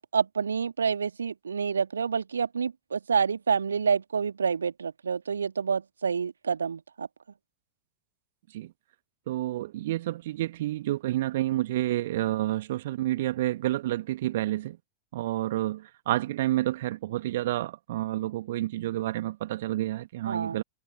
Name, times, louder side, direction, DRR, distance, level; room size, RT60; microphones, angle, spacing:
voice 1, 0.0-7.1 20.3-20.6, right 6 dB, 70° right, 1.8 m, -28 dB
voice 2, 9.3-14.8 15.1-20.6, right 15 dB, 55° right, 1.6 m, -29 dB
figure-of-eight pair, 90°, 0 cm